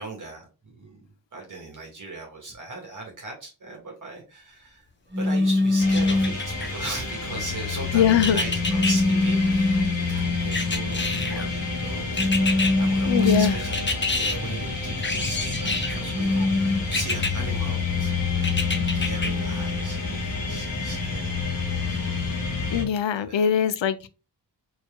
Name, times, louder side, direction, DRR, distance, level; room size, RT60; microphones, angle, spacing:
voice 1, 0.0-4.8 5.2-21.4 21.9-22.0 23.3-23.5, right 3 dB, 45° right, 2.1 m, -38 dB
sound 1, 5.1-6.5 8.6-10.0 12.1-13.7 16.1-16.8, left 2 dB, 25° right, 1.1 m, -22 dB
sound 2, 5.8-22.8, left 4 dB, 50° left, 1.9 m, -28 dB
sound 3, 5.9-6.7 8.2-8.9 10.5-11.5 12.2-12.7 13.7-14.4 15.0-16.0 16.9-17.3 18.4-19.3 19.8-19.9, left 3 dB, 25° left, 0.9 m, -27 dB
voice 2, 7.9-8.4 13.1-13.6 22.7-24.1, left 8 dB, 90° left, 0.6 m, -21 dB
4.8 x 4.4 x 2.3 m
wide cardioid pair, 110°, 43 cm